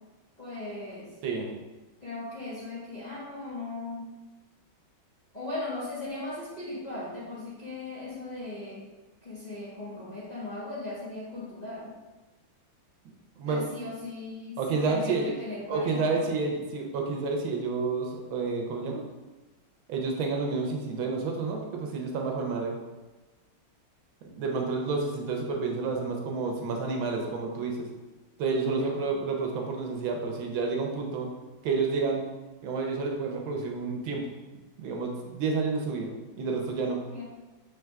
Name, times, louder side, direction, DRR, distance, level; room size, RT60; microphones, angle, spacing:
voice 1, 0.4-1.1 2.0-4.0 5.3-8.8 9.2-11.9 13.4-16.2 28.6-28.9 36.9-37.2, left 2 dB, 25° left, -10 dB, 1.0 m, -38 dB
voice 2, 14.6-15.3 15.7-19.0 19.9-22.7 24.2-27.9 28.4-31.3 31.6-32.2 32.6-34.2 34.8-36.1 36.4-37.0, right 4 dB, 80° right, 1 dB, 1.5 m, -29 dB
6.7 x 3.3 x 2.3 m, 1.2 s
omnidirectional pair, 2.2 m